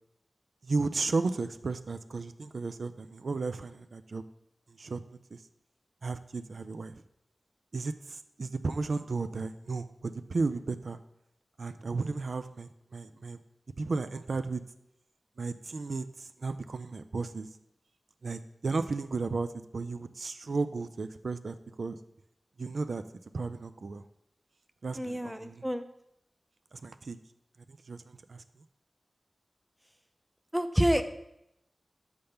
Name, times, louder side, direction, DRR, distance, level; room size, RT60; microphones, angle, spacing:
voice 1, 0.6-4.2 4.8-5.0 5.3-5.4 6.0-6.9 7.7-11.0 11.6-13.4 13.8-14.6 15.4-17.5 18.2-19.5 19.7-22.0 22.6-23.0 23.3-24.1 24.8-25.6 26.7-27.2 27.9-28.4, right 3 dB, 80° right, 10 dB, 0.3 m, -34 dB
voice 2, 25.0-25.8 30.5-31.0, equal, 5° right, 9 dB, 0.5 m, -28 dB
6.5 x 3.5 x 5.7 m, 0.80 s
wide cardioid pair, 75°, 0 cm